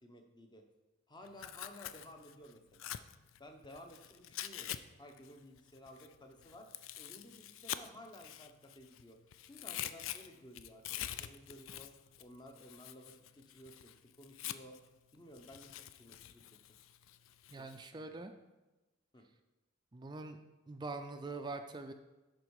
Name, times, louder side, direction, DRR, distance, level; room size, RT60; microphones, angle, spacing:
voice 1, 0.0-0.6 1.1-2.9 3.4-6.7 7.0-9.2 9.4-11.9 12.2-14.8 15.1-16.8 17.6-18.2 19.1-19.3, equal, 20° left, 4 dB, 0.9 m, -55 dB
Tearing, 1.3-4.8 5.1-9.0 9.3-14.9 15.3-17.9, left 12 dB, 75° left, 0.4 m, -46 dB
voice 2, 17.5-18.3 19.9-20.4 20.7-21.9, right 3 dB, 20° right, 7 dB, 0.4 m, -43 dB
11.0 x 4.5 x 4.8 m, 1.1 s
head